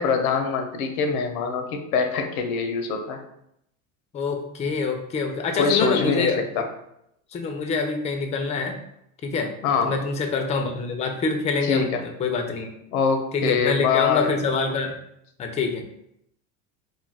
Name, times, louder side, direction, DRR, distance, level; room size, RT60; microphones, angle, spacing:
voice 1, 0.0-3.2 5.6-6.6 9.6-9.9 11.6-12.0 12.9-14.3, left 5 dB, 85° left, 5 dB, 0.6 m, -24 dB
voice 2, 4.1-6.4 7.3-8.8 9.2-9.5 9.8-12.7 13.3-15.0 15.4-15.8, left 4 dB, 20° left, 4 dB, 0.3 m, -25 dB
2.3 x 2.2 x 3.3 m, 0.77 s
hypercardioid pair, 85°, 42 cm